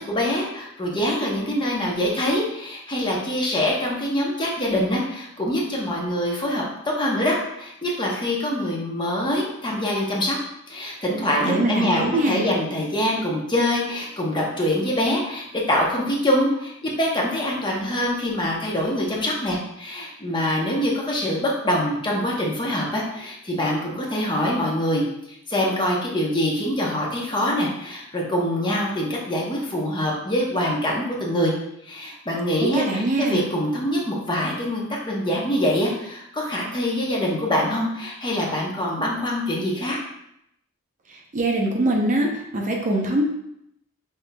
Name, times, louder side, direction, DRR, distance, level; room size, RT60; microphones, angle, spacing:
voice 1, 0.0-6.6 7.0-10.4 10.7-12.0 12.3-25.0 25.3-31.5 31.8-40.0, left 1 dB, 20° left, -3 dB, 0.8 m, -24 dB
voice 2, 11.4-12.4 32.6-33.5 41.1-43.2, right 2 dB, 35° right, 0 dB, 0.6 m, -23 dB
5.5 x 3.4 x 2.2 m, 0.79 s
head